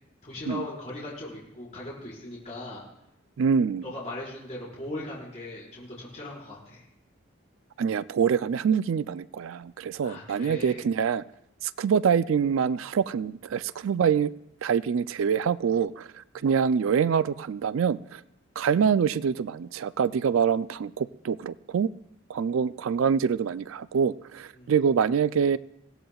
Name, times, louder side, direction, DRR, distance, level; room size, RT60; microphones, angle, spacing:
voice 1, 0.2-2.8 3.8-6.8 10.0-10.8 16.3-16.5 24.6-24.7, left 1 dB, 35° left, -6 dB, 4.9 m, -39 dB
voice 2, 3.4-3.8 7.8-11.2 11.6-14.3 14.6-16.1 16.4-18.2 18.6-21.9 22.3-25.6, right 7 dB, 85° right, 16 dB, 0.4 m, -25 dB
21.5 x 17.0 x 2.4 m, 0.84 s
head